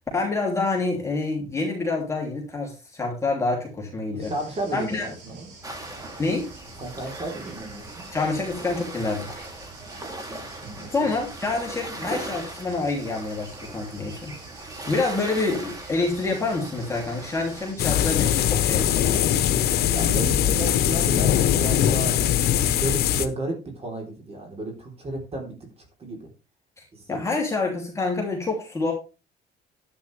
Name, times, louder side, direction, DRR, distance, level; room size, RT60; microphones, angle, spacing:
voice 1, 0.1-4.3 4.7-5.1 6.2-6.5 8.1-9.3 10.9-19.3 26.8-28.9, left 3 dB, 15° left, -1 dB, 2.9 m, -27 dB
voice 2, 4.1-5.5 6.8-8.1 10.6-11.1 19.9-25.6 26.0-26.3 26.9-27.3, right 2 dB, 35° right, 2 dB, 3.6 m, -33 dB
sound 1, 4.2-19.4, right 4 dB, 75° right, 5.5 m, -46 dB
sound 2, 5.6-17.7, right 1 dB, 20° right, 2.7 m, -39 dB
sound 3, 17.8-23.3, left 10 dB, 70° left, 1.1 m, -21 dB
10.5 x 9.5 x 3.3 m, 0.31 s
cardioid pair, 110°, 17 cm